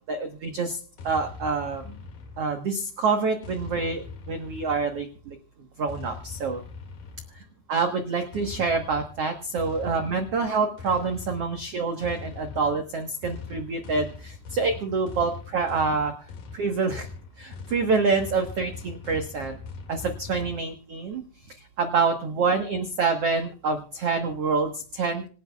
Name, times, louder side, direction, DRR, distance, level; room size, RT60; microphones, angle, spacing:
voice 1, 0.1-0.8 1.0-1.9 2.4-5.4 5.8-6.6 7.7-16.1 16.5-17.1 17.4-19.6 19.9-21.2 21.6-25.3, right 4 dB, 70° right, 5 dB, 1.4 m, -27 dB
sound 1, 1.0-2.7 3.4-5.2 5.9-7.5 8.3-20.6, left 4 dB, 60° left, 3.5 m, -41 dB
27.0 x 10.0 x 2.3 m, 0.41 s
omnidirectional pair, 4.7 m